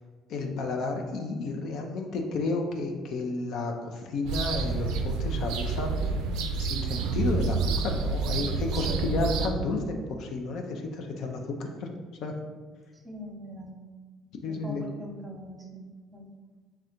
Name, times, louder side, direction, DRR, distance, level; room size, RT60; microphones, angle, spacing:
voice 1, 0.3-6.0 6.6-11.9 12.2-12.3 14.4-14.8, left 3 dB, 65° left, 3 dB, 0.5 m, -32 dB
sound 1, 4.3-9.5, right 4 dB, 75° right, 0.3 m, -28 dB
voice 2, 8.7-9.2 12.9-13.8 14.5-15.9 16.1-16.3, left 1 dB, 20° right, 1 dB, 0.9 m, -42 dB
3.3 x 2.4 x 4.3 m, 1.4 s
hypercardioid pair, 65°, 0 cm